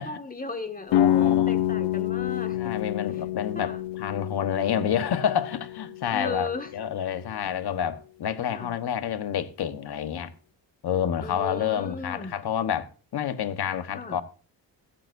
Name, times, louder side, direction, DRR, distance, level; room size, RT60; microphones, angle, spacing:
voice 1, 0.0-2.7 3.6-3.8 6.1-6.7 8.5-8.8 11.2-12.3 14.0-14.2, left 3 dB, 20° left, 1.8 m, -36 dB
sound 1, 0.9-6.7, left 11 dB, 85° left, 1.0 m, -27 dB
voice 2, 0.9-1.6 2.5-10.3 10.8-14.2, left 9 dB, 60° left, 1.3 m, -29 dB
17.0 x 13.5 x 2.7 m
cardioid pair, 90°, 43 cm